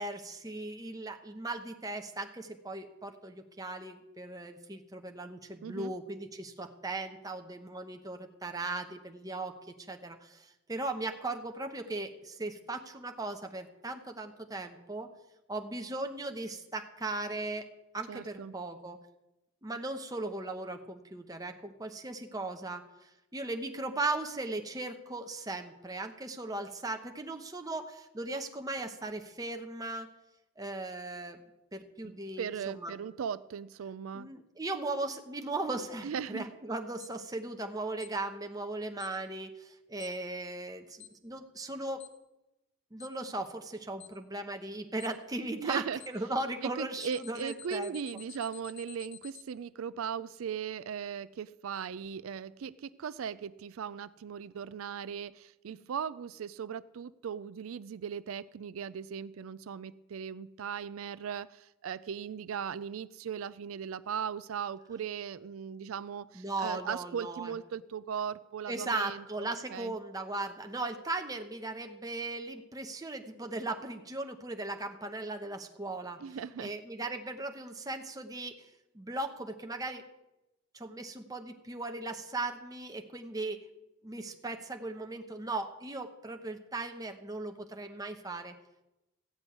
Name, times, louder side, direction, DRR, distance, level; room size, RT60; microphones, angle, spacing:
voice 1, 0.0-9.6 9.9-15.1 15.5-17.7 17.9-19.0 19.6-30.1 30.6-31.4 31.7-33.0 34.1-42.0 42.9-48.0 66.3-67.5 68.7-76.2 76.6-78.6 78.9-80.0 80.7-83.6 84.0-88.5, right 2 dB, 20° right, 5 dB, 1.0 m, -38 dB
voice 2, 18.1-18.5 32.0-34.3 36.0-36.5 45.6-46.0 46.8-69.2 69.7-69.9 76.2-76.7, right 7 dB, 85° right, 16 dB, 0.4 m, -38 dB
Alarm, 37.0-37.1 38.0-38.1 39.0-39.1 40.0-40.1 41.0-41.1 42.0-42.1 43.0-43.1 44.0-44.1 45.0-45.1 46.0-46.1 47.0-49.4, left 11 dB, 60° left, 1.0 m, -49 dB
15.0 x 5.3 x 9.4 m, 0.97 s
head